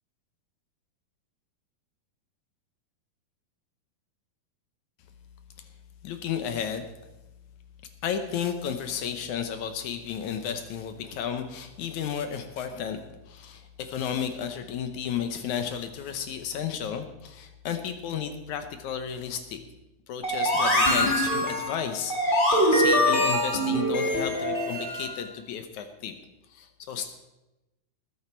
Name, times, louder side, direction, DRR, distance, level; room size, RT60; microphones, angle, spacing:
voice 1, 6.0-6.9 8.0-13.0 13.3-19.6 20.1-26.2 26.5-27.1, left 8 dB, 75° left, 7 dB, 1.8 m, -33 dB
sound 1, 20.2-25.1, equal, 35° left, 0.8 m, -24 dB
20.0 x 9.4 x 4.4 m, 1.0 s
omnidirectional pair, 4.4 m